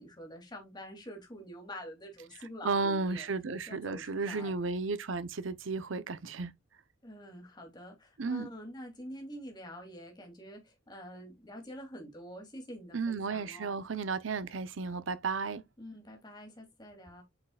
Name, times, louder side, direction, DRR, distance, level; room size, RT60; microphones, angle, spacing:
voice 1, 0.0-3.3 3.7-4.6 7.0-13.8 15.8-17.2, equal, 20° left, 2.7 m, -46 dB
voice 2, 2.6-6.5 8.2-8.5 12.9-15.6, right 4 dB, 75° right, 0.7 m, -33 dB
8.4 x 5.3 x 2.4 m
head